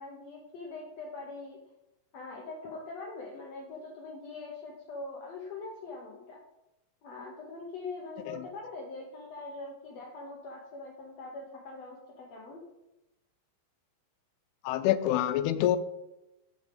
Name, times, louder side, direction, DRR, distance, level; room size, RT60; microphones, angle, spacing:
voice 1, 0.0-1.6 2.1-6.4 7.0-12.6, left 3 dB, 70° left, 1.6 m, -42 dB
voice 2, 14.6-15.8, left 12 dB, 90° left, 2.5 m, -26 dB
7.2 x 6.6 x 5.2 m
omnidirectional pair, 4.4 m